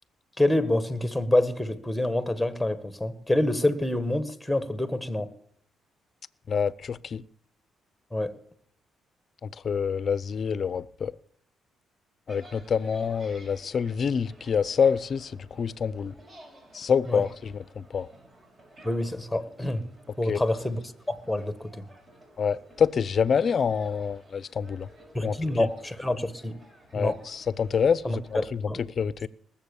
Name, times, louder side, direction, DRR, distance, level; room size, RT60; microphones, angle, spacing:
voice 1, 0.4-5.3 8.1-8.3 17.1-17.2 18.8-19.9 20.2-20.8 21.1-21.8 25.1-26.6 26.9-27.2 28.0-28.8, left 1 dB, ahead, 1.5 m, -27 dB
voice 2, 6.5-7.2 9.6-11.1 12.3-16.1 16.7-18.1 20.3-20.4 22.4-24.9 25.2-25.3 26.9-28.6 29.0-29.3, left 6 dB, 50° left, 0.6 m, -26 dB
sound 1, 12.3-28.4, right 1 dB, 40° right, 5.5 m, -53 dB
19.5 x 7.4 x 7.0 m
cardioid pair, 90°, 0 cm